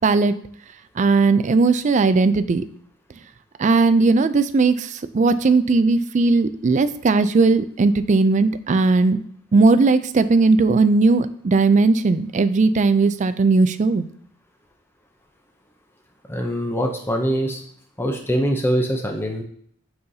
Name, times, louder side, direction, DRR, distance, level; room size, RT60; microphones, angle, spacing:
voice 1, 0.0-0.3 1.0-2.6 3.6-4.9 5.1-9.2 9.5-14.0, right 3 dB, 35° right, 12 dB, 0.3 m, -17 dB
voice 2, 16.3-17.6 18.0-19.4, equal, 10° left, 3 dB, 0.6 m, -23 dB
7.8 x 5.6 x 2.7 m, 0.64 s
head